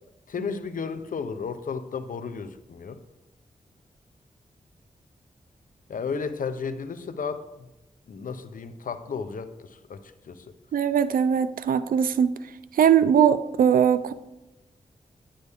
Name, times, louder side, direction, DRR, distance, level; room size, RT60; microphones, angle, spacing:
voice 1, 0.3-3.0 5.9-7.7 8.1-10.5, left 5 dB, 75° left, 11 dB, 0.7 m, -33 dB
voice 2, 10.7-12.3 12.7-14.1, right 8 dB, 85° right, 14 dB, 0.4 m, -20 dB
10.0 x 9.5 x 3.6 m, 0.98 s
cardioid pair, 60°, 14 cm